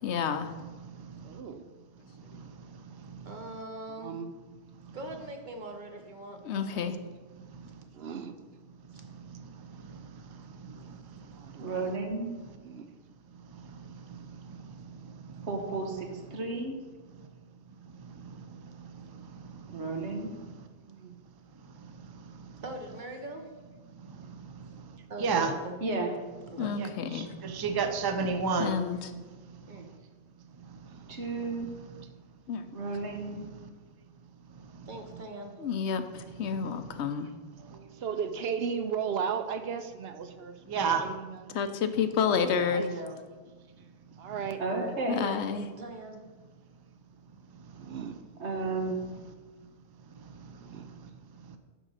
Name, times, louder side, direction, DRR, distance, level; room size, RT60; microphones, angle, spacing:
voice 1, 0.0-0.5 2.3-2.4 6.4-7.0 26.6-27.3 28.6-29.1 32.5-32.7 35.6-37.3 41.5-42.9 45.1-45.7, left 6 dB, 80° left, 9 dB, 1.0 m, -30 dB
voice 2, 1.2-1.6 4.0-4.3 7.9-8.3 11.4-11.9 12.6-12.9 20.8-21.1 37.9-41.6 42.5-42.9 44.2-44.6 47.8-48.2 50.6-50.9, right 7 dB, 70° right, 9 dB, 0.8 m, -35 dB
voice 3, 3.2-4.2 4.9-6.8 8.9-9.0 22.6-23.5 25.1-25.7 26.5-26.7 29.7-29.9 34.9-35.5 42.8-43.2 44.7-46.2, right 2 dB, 45° right, 4 dB, 1.1 m, -41 dB
voice 4, 11.6-12.3 15.4-16.8 19.7-20.3 25.8-26.1 31.1-31.7 32.7-33.4 44.6-45.2 48.4-49.0, right 3 dB, 85° right, 3 dB, 1.5 m, -33 dB
voice 5, 25.2-25.5 26.8-26.9 27.1-28.8 40.7-41.1, right 5 dB, 30° right, 7 dB, 0.5 m, -28 dB
10.0 x 3.8 x 6.4 m, 1.4 s
omnidirectional pair, 1.1 m